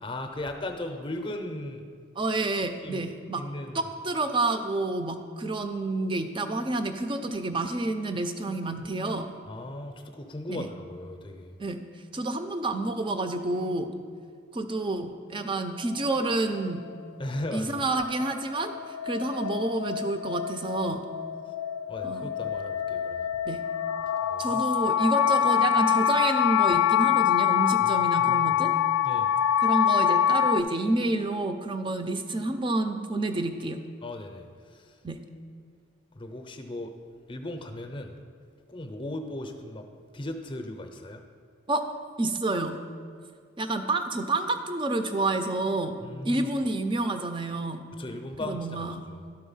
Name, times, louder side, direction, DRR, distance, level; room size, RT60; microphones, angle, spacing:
voice 1, 0.0-1.9 2.8-3.1 3.3-3.8 9.5-11.5 17.2-17.8 21.9-23.3 24.3-24.6 27.8-28.5 29.0-29.3 34.0-35.0 36.1-36.9 37.3-38.1 38.7-39.8 40.1-41.2 46.0-46.5 47.9-49.3, left 1 dB, 25° left, 5 dB, 0.6 m, -37 dB
voice 2, 2.2-3.4 3.7-9.3 10.5-10.7 11.6-11.8 12.1-13.9 14.5-16.9 17.5-21.0 22.0-22.3 23.5-23.6 24.4-28.7 29.6-33.8 35.0-35.2 41.7-41.8 42.2-42.8 43.6-47.9 48.4-49.0, right 2 dB, 25° right, 7 dB, 0.4 m, -29 dB
sound 1, 17.8-30.6, left 9 dB, 85° left, 0.4 m, -25 dB
12.0 x 3.9 x 5.5 m, 2.2 s
head